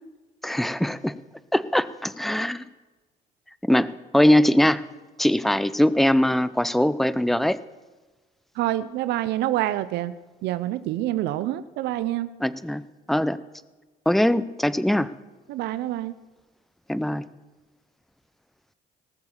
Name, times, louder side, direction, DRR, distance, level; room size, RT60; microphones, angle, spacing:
voice 1, 0.4-1.2 1.5-2.6 3.6-4.8 5.2-7.6 12.4-12.8 13.1-13.4 14.1-15.1 16.9-17.2, left 1 dB, ahead, 16 dB, 0.5 m, -21 dB
voice 2, 8.5-10.1 10.4-12.3 15.5-16.1, right 14 dB, 85° right, 14 dB, 0.6 m, -27 dB
19.0 x 6.9 x 7.2 m, 1.2 s
cardioid pair, 110°, 17 cm